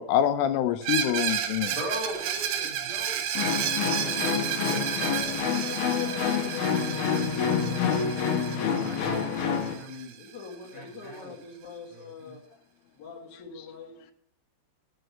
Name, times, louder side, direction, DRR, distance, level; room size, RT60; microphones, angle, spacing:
voice 1, 0.0-1.8, left 10 dB, 80° left, 9 dB, 3.0 m, -25 dB
Screech, 0.8-10.5, right 9 dB, 80° right, 3.3 m, -32 dB
voice 2, 1.7-3.2 3.8-5.7 6.2-7.9 8.8-10.2 10.7-11.4 11.9-12.4, equal, 5° left, -4 dB, 4.2 m, -41 dB
sound 1, 3.3-9.7, left 7 dB, 65° left, 2.5 m, -27 dB
voice 3, 10.2-12.4 13.0-14.1, left 4 dB, 45° left, -2 dB, 2.8 m, -44 dB
7.9 x 6.7 x 8.1 m, 0.67 s
omnidirectional pair, 6.0 m